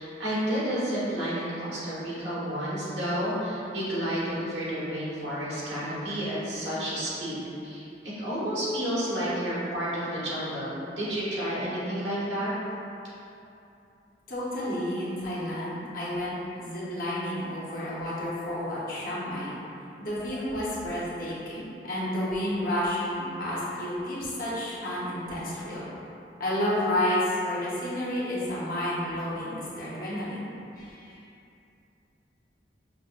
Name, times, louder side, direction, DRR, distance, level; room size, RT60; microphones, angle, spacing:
voice 1, 0.0-12.5, equal, 70° right, -9 dB, 1.3 m, -31 dB
voice 2, 14.3-19.5 20.0-25.9 26.4-30.5 30.8-31.2, left 1 dB, 55° left, -8 dB, 0.9 m, -31 dB
5.6 x 2.1 x 2.5 m, 2.7 s
head